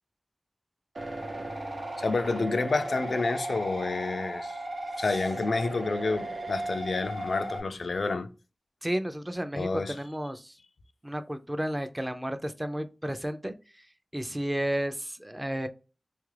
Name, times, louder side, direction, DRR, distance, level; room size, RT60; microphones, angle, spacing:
sound 1, 0.9-7.6, right 1 dB, 90° right, 0.7 m, -36 dB
voice 1, 2.0-4.6 5.0-8.3 9.6-9.9, left 3 dB, 85° left, 0.3 m, -29 dB
voice 2, 8.8-10.6 11.0-13.9 14.1-15.7, right 1 dB, 15° right, 0.3 m, -32 dB
3.2 x 2.4 x 3.2 m
wide cardioid pair, 70°, 0 cm